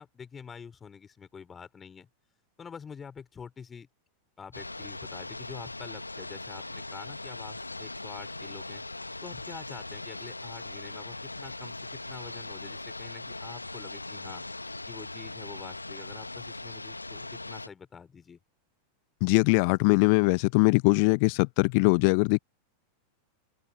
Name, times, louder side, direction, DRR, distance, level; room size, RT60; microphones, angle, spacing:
voice 1, 0.0-2.1 2.6-3.9 4.4-8.8 9.2-14.4 14.9-18.4, left 6 dB, 20° left, 3.7 m, -46 dB
sound 1, 4.5-17.7, left 2 dB, 85° left, 1.4 m, -40 dB
voice 2, 19.2-22.4, left 33 dB, 45° left, 0.9 m, -22 dB
figure-of-eight pair, 90°, 0 cm